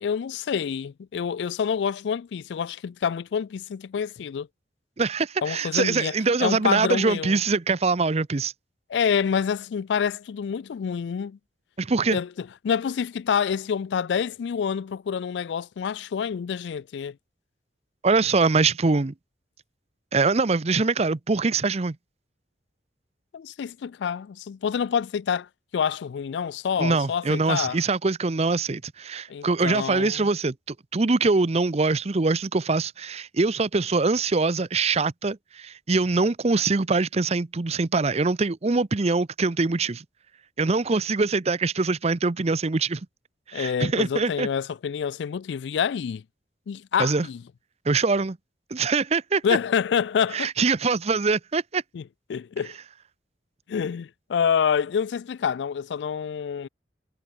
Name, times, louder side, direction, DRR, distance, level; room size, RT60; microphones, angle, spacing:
voice 1, 0.0-4.5 5.4-6.1 6.4-7.4 8.9-11.4 12.1-17.1 23.3-27.8 29.3-30.3 43.5-46.2 46.7-47.4 49.4-50.5 51.9-52.0 52.3-52.8 53.7-56.7, left 7 dB, 80° left, 0.3 m, -27 dB
voice 2, 5.0-8.5 11.8-12.2 18.0-19.1 20.1-22.0 26.8-40.0 40.6-43.0 43.5-44.5 47.0-47.3 47.9-48.4 48.7-49.4 50.3-51.8, right 3 dB, 35° right, 0.6 m, -23 dB
head